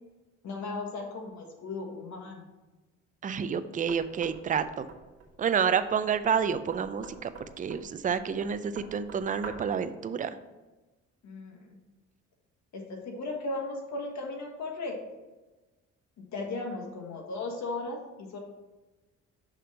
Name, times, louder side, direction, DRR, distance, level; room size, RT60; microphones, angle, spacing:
voice 1, 0.4-2.5 11.2-11.8 12.7-15.0 16.3-18.4, left 3 dB, 65° left, 1 dB, 1.5 m, -36 dB
voice 2, 3.2-4.9 5.4-7.3 7.6-10.3, right 7 dB, 25° right, 11 dB, 0.4 m, -29 dB
Knock, 3.9-9.8, right 4 dB, 55° right, 1.5 m, -48 dB
6.0 x 3.4 x 5.6 m, 1.1 s
cardioid pair, 90°, 30 cm